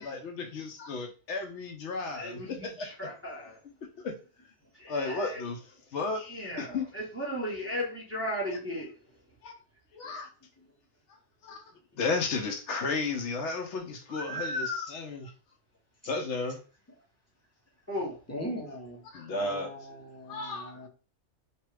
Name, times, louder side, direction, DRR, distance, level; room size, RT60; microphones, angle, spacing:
voice 1, 0.0-2.9 4.0-4.2 4.9-5.6 5.9-6.2 6.6-6.9 9.4-9.5 9.9-10.3 11.4-11.6 12.0-15.3 16.0-16.6 19.1-19.7 20.3-20.9, left 3 dB, 75° left, 5 dB, 1.0 m, -33 dB
voice 2, 2.1-3.6 4.7-5.4 6.2-8.9 14.1-14.9 17.9-18.2, equal, 15° right, -5 dB, 0.9 m, -35 dB
voice 3, 18.3-20.9, equal, 15° left, -2 dB, 0.7 m, -41 dB
2.9 x 2.3 x 3.1 m, 0.35 s
omnidirectional pair, 1.2 m